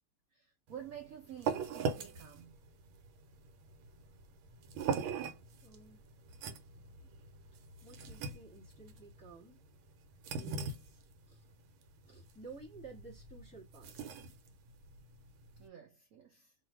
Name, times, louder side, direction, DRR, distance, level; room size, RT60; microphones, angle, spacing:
voice 1, 0.3-2.6 15.6-16.5, right 9 dB, 65° right, 0.9 m, -50 dB
sound 1, 0.7-15.7, right 5 dB, 85° right, 1.5 m, -42 dB
voice 2, 5.6-6.0 7.0-7.1 7.8-9.6 10.3-11.0 11.3-11.4 12.0-14.2, right 4 dB, 15° left, 0.9 m, -53 dB
3.2 x 2.5 x 4.4 m
omnidirectional pair, 2.2 m